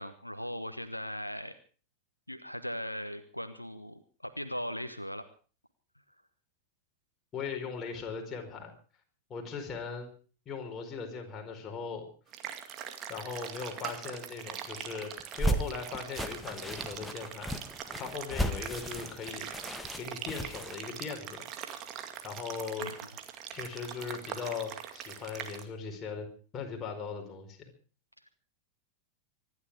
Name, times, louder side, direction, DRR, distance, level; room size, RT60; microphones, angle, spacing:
voice 1, 0.0-1.6 2.3-5.2 22.8-23.0, equal, 90° left, 11 dB, 1.1 m, -39 dB
voice 2, 7.3-8.7 9.3-10.1 10.4-12.1 13.1-15.1 15.4-17.5 17.9-19.5 20.0-21.4 22.2-22.9 23.5-26.3 26.5-27.7, left 5 dB, 25° left, 2 dB, 4.7 m, -39 dB
sound 1, 12.3-25.6, right 9 dB, 35° right, 2.2 m, -42 dB
sound 2, 15.2-20.8, right 1 dB, 5° left, 1.8 m, -35 dB
25.0 x 11.0 x 4.9 m, 0.39 s
figure-of-eight pair, 90°, 0 cm